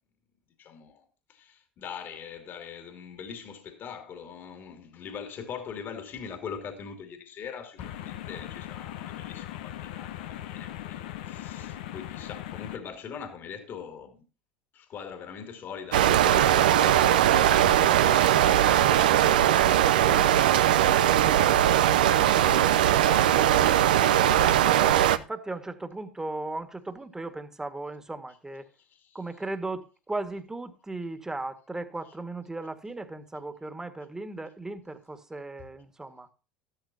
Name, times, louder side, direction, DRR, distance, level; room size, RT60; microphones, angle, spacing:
voice 1, 0.6-14.3 14.7-20.1 21.1-24.0 28.8-29.2, left 7 dB, 50° left, 2.6 m, -42 dB
sound 1, 7.8-12.8, left 12 dB, 75° left, 0.9 m, -39 dB
sound 2, 15.9-25.2, right 11 dB, 80° right, 0.6 m, -20 dB
voice 2, 23.9-28.7 29.1-36.3, right 2 dB, 10° right, 1.8 m, -37 dB
13.5 x 12.5 x 2.8 m
hypercardioid pair, 75°, 5 cm